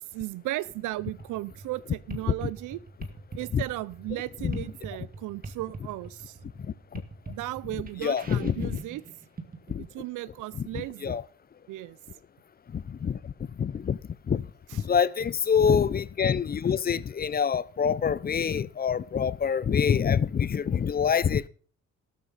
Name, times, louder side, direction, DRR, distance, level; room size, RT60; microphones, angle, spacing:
voice 1, 0.0-2.8 3.4-6.4 7.3-9.0 9.8-11.2 11.7-12.0, right 17 dB, 85° right, 0.6 m, -35 dB
sound 1, 1.0-9.9, right 3 dB, 30° right, 2.0 m, -44 dB
voice 2, 6.6-7.0 8.0-8.8 9.7-9.8 10.5-11.2 12.7-13.3 13.6-14.0 14.3-14.5 14.7-21.5, left 7 dB, 30° left, 0.5 m, -26 dB
12.5 x 12.0 x 4.1 m
cardioid pair, 90°, 30 cm